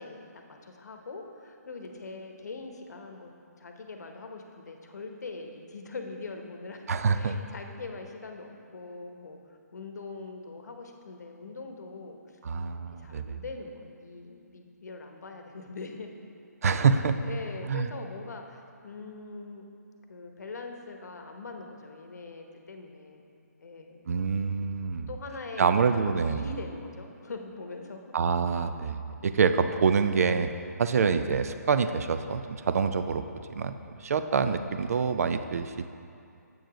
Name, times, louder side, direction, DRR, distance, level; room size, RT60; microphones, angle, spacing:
voice 1, 0.0-3.3 3.6-6.9 7.1-9.4 9.7-12.2 13.0-16.1 16.6-16.9 17.2-19.6 20.1-23.2 23.6-24.1 25.1-28.0 30.8-31.1, left 3 dB, 70° left, 4 dB, 0.9 m, -42 dB
voice 2, 6.9-7.4 12.4-13.4 16.6-17.2 17.6-17.9 24.1-25.1 25.6-26.5 28.1-30.5 30.8-33.2 33.5-33.8 34.0-35.8, right 5 dB, 60° right, 10 dB, 0.4 m, -26 dB
7.8 x 4.7 x 5.0 m, 2.5 s
hypercardioid pair, 155°, 9 cm